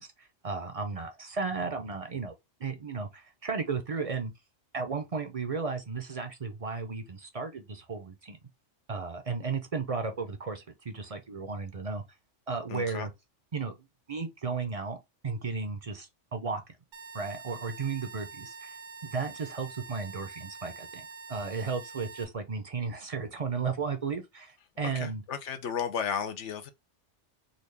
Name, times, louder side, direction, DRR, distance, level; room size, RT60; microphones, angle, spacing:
voice 1, 0.0-2.3 2.6-4.3 4.7-8.4 8.9-12.0 12.5-13.1 13.5-13.7 14.1-15.0 15.2-16.6 17.1-18.8 19.0-25.2, right 4 dB, 40° right, 0.6 m, -34 dB
voice 2, 12.7-13.1 24.8-26.7, left 7 dB, 80° left, 1.0 m, -34 dB
sound 1, 16.9-22.2, right 5 dB, 80° right, 1.0 m, -46 dB
4.0 x 2.4 x 3.2 m
omnidirectional pair, 1.2 m